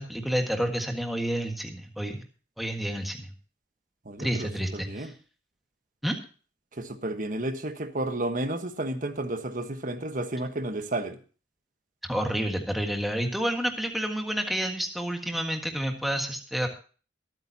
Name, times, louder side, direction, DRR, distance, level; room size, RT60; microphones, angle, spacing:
voice 1, 0.0-2.2 2.6-3.3 4.2-5.1 6.0-6.2 12.0-16.7, equal, ahead, 3 dB, 1.6 m, -29 dB
voice 2, 4.0-5.1 6.7-11.2, right 1 dB, 45° right, 8 dB, 1.3 m, -32 dB
23.0 x 9.0 x 2.8 m, 0.38 s
head